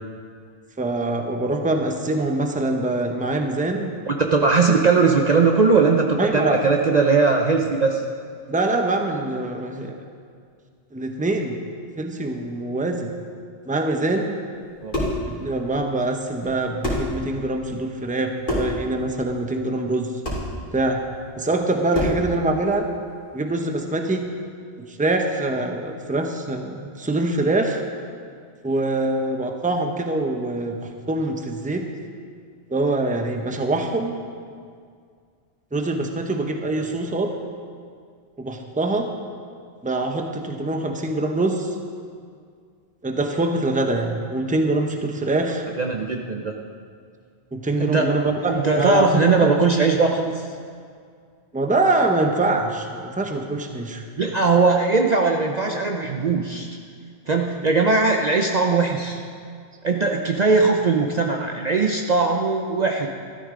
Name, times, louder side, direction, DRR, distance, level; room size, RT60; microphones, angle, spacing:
voice 1, 0.8-3.9 6.2-6.6 8.5-10.0 10.9-11.6 12.0-13.1 13.7-14.4 15.4-20.1 20.7-21.0 21.4-22.8 23.3-24.3 24.8-27.8 28.6-31.9 32.7-34.2 35.7-37.3 38.4-39.1 39.8-41.7 43.0-45.6 47.5-49.5 51.5-54.0, right 2 dB, 10° right, 4 dB, 0.7 m, -24 dB
voice 2, 4.1-8.0 14.8-15.0 36.8-36.9 45.8-46.5 47.8-48.1 48.4-50.4 54.2-56.7 57.3-59.2 59.8-63.1, right 4 dB, 45° right, 2 dB, 0.7 m, -19 dB
sound 1, 14.6-15.3 16.4-16.5 16.8-17.2 18.4-18.8 20.2-20.5 21.9-22.3, left 1 dB, 45° left, 3.2 m, -25 dB
13.5 x 12.5 x 3.8 m, 2.1 s
omnidirectional pair, 1.2 m